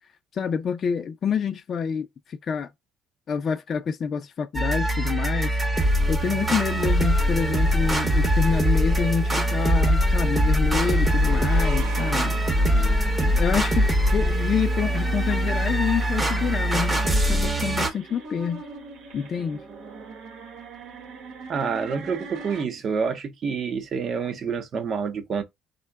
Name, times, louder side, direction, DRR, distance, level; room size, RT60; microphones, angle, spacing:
voice 1, 0.3-2.7 3.3-5.6 6.1-12.4 13.2-13.9 14.1-18.6 19.1-19.6, left 6 dB, 40° left, 0.4 m, -27 dB
sound 1, 4.5-17.9, equal, 10° right, 0.8 m, -22 dB
sound 2, 10.9-22.6, right 4 dB, 70° right, 1.0 m, -40 dB
voice 2, 21.5-25.4, right 6 dB, 40° right, 0.8 m, -28 dB
3.7 x 2.2 x 3.4 m
cardioid pair, 125°, 0 cm